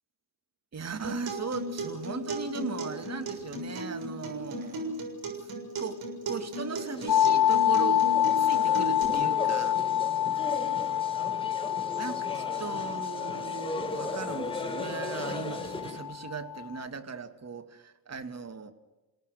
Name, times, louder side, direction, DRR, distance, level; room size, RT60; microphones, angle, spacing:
voice 1, 0.7-5.0 5.8-6.0 6.3-8.0 8.4-9.8 12.0-18.7, right 5 dB, 35° right, 7 dB, 2.6 m, -38 dB
Acoustic guitar, 1.0-9.0, right 1 dB, 50° right, 7.1 m, -36 dB
sound 1, 6.9-16.1, left 2 dB, 10° left, 4.5 m, -37 dB
sound 2, 7.1-16.9, left 11 dB, 55° left, 1.0 m, -28 dB
29.0 x 17.5 x 6.8 m, 1.1 s
hypercardioid pair, 45°, 44 cm